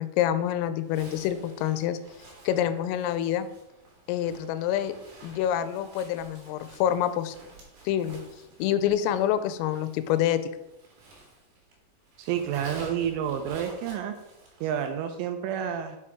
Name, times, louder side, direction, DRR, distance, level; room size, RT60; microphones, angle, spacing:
voice 1, 0.0-2.0 2.5-3.5 4.1-5.0 5.2-7.4 7.9-8.2 8.6-10.4, left 11 dB, 85° left, 12 dB, 3.2 m, -27 dB
Zipper (clothing), 0.8-11.8 12.0-15.0, right 3 dB, 55° right, 3.4 m, -50 dB
voice 2, 12.2-14.1 14.6-16.0, right 9 dB, 85° right, 6 dB, 2.9 m, -29 dB
7.4 x 5.9 x 4.7 m, 0.90 s
omnidirectional pair, 6.0 m